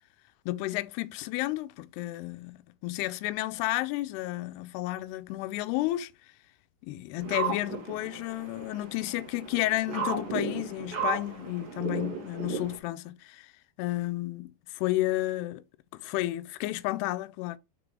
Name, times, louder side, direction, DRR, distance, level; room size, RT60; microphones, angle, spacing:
voice 1, 0.5-2.6 2.8-6.1 6.8-13.5 13.8-15.6 15.9-17.6, left 17 dB, 85° left, 2.6 m, -32 dB
sound 1, 7.2-12.8, right 5 dB, 50° right, 1.9 m, -35 dB
6.3 x 4.9 x 4.8 m
omnidirectional pair, 4.6 m